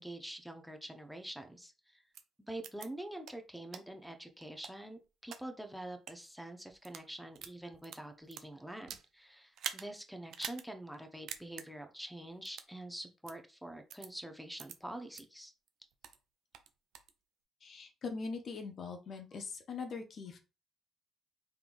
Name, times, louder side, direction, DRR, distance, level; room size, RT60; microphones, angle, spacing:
voice 1, 0.0-2.0 2.5-15.5, right 1 dB, ahead, 5 dB, 0.8 m, -46 dB
sound 1, 2.1-2.2 2.6-2.9 3.2-3.3 3.7-3.8 4.4-5.4 5.9-6.1 6.7-7.1 7.4-9.1 9.5-9.9 10.3-10.6 10.9-11.0 11.3-11.7 12.5-12.7 13.3-13.4 13.9-14.1 14.6-14.7 15.1-15.2 15.7-16.2 16.5-17.1, right 9 dB, 70° right, 0.4 m, -45 dB
voice 2, 17.6-20.4, left 4 dB, 55° left, 4 dB, 0.7 m, -42 dB
3.6 x 3.2 x 2.6 m, 0.30 s
hypercardioid pair, 55°, 0 cm